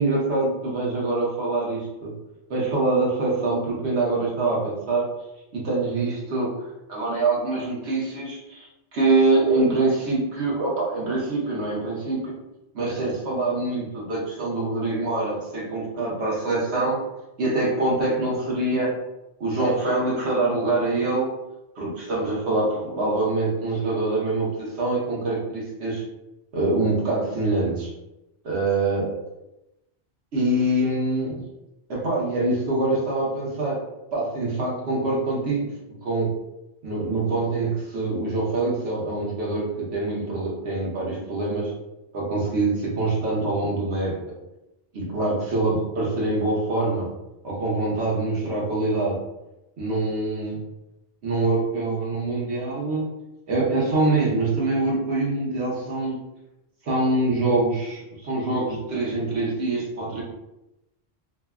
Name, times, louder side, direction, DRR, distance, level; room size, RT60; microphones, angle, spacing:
voice 1, 0.0-2.1 2.5-5.1 5.5-6.5 6.9-12.3 12.7-17.0 17.4-19.0 19.4-21.3 21.8-26.0 26.5-27.9 28.4-29.2 30.3-31.4 31.9-33.8 34.1-35.7 36.0-36.3 36.8-41.7 42.1-44.2 44.9-47.1 47.4-49.2 49.8-50.6 51.2-53.1 53.5-56.2 56.8-60.2, right 2 dB, 70° right, -4 dB, 1.1 m, -24 dB
3.2 x 2.2 x 2.3 m, 0.93 s
omnidirectional pair, 1.2 m